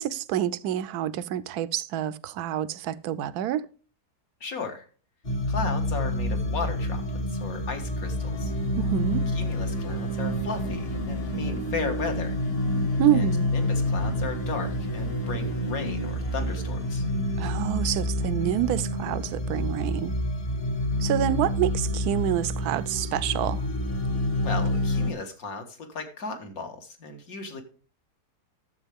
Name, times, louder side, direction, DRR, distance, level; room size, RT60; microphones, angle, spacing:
voice 1, 0.0-3.6 8.8-9.2 12.8-13.5 17.4-20.1 21.0-23.6, right 11 dB, 75° right, 1.1 m, -27 dB
voice 2, 4.4-4.9 5.5-7.0 7.3-8.5 9.3-12.4 13.1-17.1 24.4-27.6, left 4 dB, 65° left, 2.0 m, -35 dB
sound 1, 5.2-25.1, left 1 dB, 40° left, 1.4 m, -28 dB
12.0 x 7.5 x 3.5 m
omnidirectional pair, 1.7 m